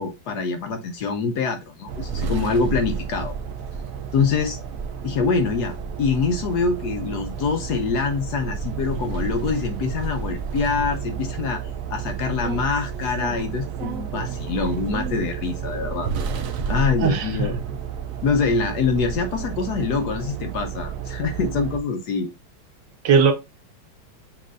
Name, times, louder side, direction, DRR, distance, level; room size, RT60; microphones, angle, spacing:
voice 1, 0.0-3.3 4.1-4.6 5.0-16.1 16.7-17.6 18.2-22.3, left 5 dB, 70° left, 6 dB, 1.0 m, -25 dB
sound 1, 1.9-21.8, right 6 dB, 85° right, 0.7 m, -31 dB
voice 2, 17.0-17.5 23.0-23.3, right 6 dB, 70° right, 5 dB, 1.4 m, -18 dB
7.3 x 2.6 x 2.5 m, 0.24 s
omnidirectional pair, 2.1 m